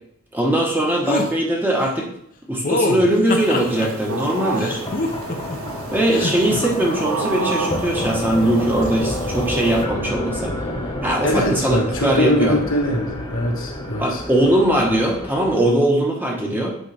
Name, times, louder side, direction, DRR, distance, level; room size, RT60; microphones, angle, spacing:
voice 1, 0.3-2.1 2.5-4.8 5.9-10.5 11.0-12.6 14.0-16.8, right 1 dB, 10° right, -2 dB, 1.1 m, -20 dB
sound 1, 1.1-1.3 2.6-3.9 4.6-5.6 6.1-6.6, left 2 dB, 40° left, 0.8 m, -24 dB
sound 2, 3.3-9.8, right 4 dB, 75° right, 0.7 m, -30 dB
sound 3, 4.2-15.6, left 1 dB, 25° left, 1.3 m, -30 dB
voice 2, 11.2-14.2, left 1 dB, 65° left, 0 dB, 1.4 m, -22 dB
8.2 x 4.9 x 3.4 m, 0.73 s
head